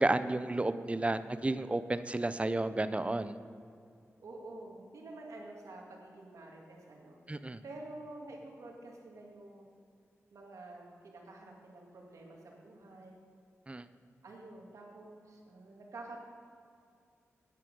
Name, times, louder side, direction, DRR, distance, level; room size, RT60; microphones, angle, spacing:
voice 1, 0.0-3.3 7.3-7.6 13.7-13.8, right 2 dB, 25° right, 13 dB, 0.5 m, -32 dB
voice 2, 4.2-9.7 10.3-13.2 14.2-16.2, right 2 dB, 85° right, 0 dB, 1.9 m, -49 dB
9.9 x 9.2 x 5.2 m, 2.5 s
cardioid pair, 55°, 5 cm